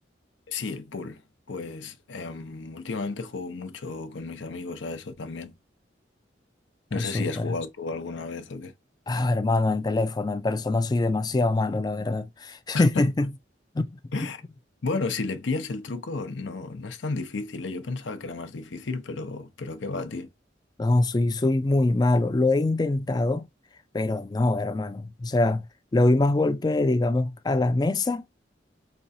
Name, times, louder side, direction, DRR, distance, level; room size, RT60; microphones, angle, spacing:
voice 1, 0.5-1.2 1.5-5.6 6.9-8.7 12.7-13.1 14.1-14.4 14.8-20.3, left 3 dB, 75° left, 0.6 m, -33 dB
voice 2, 6.9-7.5 9.1-13.3 13.7-14.3 20.8-23.5 23.9-25.7 25.9-28.2, left 2 dB, 20° left, 0.3 m, -24 dB
4.2 x 2.3 x 2.6 m
head